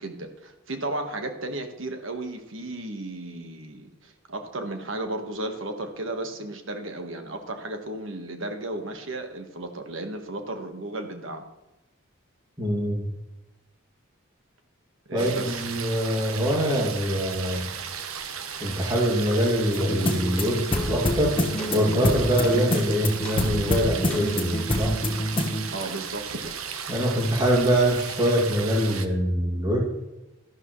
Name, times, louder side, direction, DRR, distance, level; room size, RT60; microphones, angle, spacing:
voice 1, 0.0-11.4 15.1-15.6 25.7-26.5, right 2 dB, 65° right, 5 dB, 1.5 m, -34 dB
voice 2, 12.6-13.1 15.1-17.6 18.6-21.4 21.7-25.0 26.9-29.9, equal, 20° right, -3 dB, 2.5 m, -24 dB
sound 1, 15.2-29.1, right 7 dB, 85° right, 1.0 m, -35 dB
sound 2, 19.7-25.7, left 1 dB, 25° left, 1.2 m, -27 dB
sound 3, 20.6-24.7, right 2 dB, 5° left, 4.8 m, -39 dB
12.0 x 11.5 x 3.2 m, 1.0 s
head